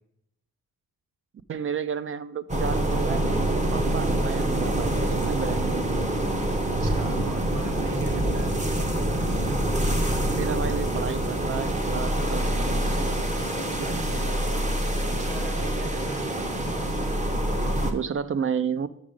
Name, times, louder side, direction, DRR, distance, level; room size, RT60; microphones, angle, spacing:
voice 1, 1.5-6.0 10.3-13.2 17.8-18.9, right 7 dB, 40° right, 14 dB, 0.4 m, -32 dB
sound 1, 2.5-17.9, right 1 dB, 20° right, 0.9 m, -26 dB
voice 2, 6.6-8.5 13.8-14.7 15.0-16.2, right 3 dB, 75° right, 3 dB, 1.5 m, -39 dB
6.2 x 6.2 x 5.1 m, 0.78 s
wide cardioid pair, 130°, 33 cm